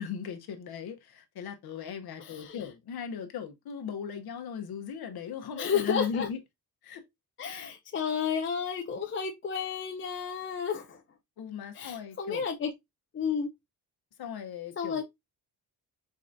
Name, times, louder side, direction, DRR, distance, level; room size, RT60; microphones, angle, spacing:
voice 1, 0.0-6.4 6.8-7.0 7.5-7.7 11.4-12.5 14.2-15.0, left 7 dB, 70° left, 0.8 m, -38 dB
voice 2, 2.2-2.6 5.6-6.3 7.4-11.0 11.8-12.7 13.1-13.5 14.8-15.0, left 6 dB, 35° left, 0.4 m, -32 dB
4.3 x 3.7 x 2.5 m
wide cardioid pair, 170°, 39 cm